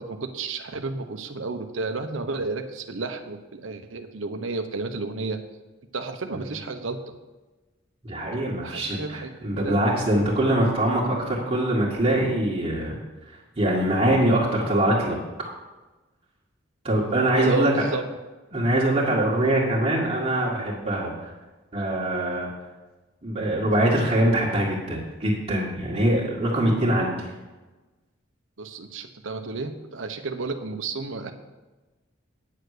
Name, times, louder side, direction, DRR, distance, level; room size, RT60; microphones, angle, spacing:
voice 1, 0.0-5.4 5.9-7.0 8.6-9.3 9.6-9.9 17.3-18.1 28.6-31.3, right 3 dB, 90° right, 6 dB, 0.8 m, -32 dB
voice 2, 8.0-13.0 13.6-15.2 16.8-17.7 18.5-21.3 21.7-22.5 23.2-27.3, right 1 dB, 35° right, -6 dB, 1.9 m, -23 dB
9.6 x 6.7 x 6.6 m, 1.2 s
head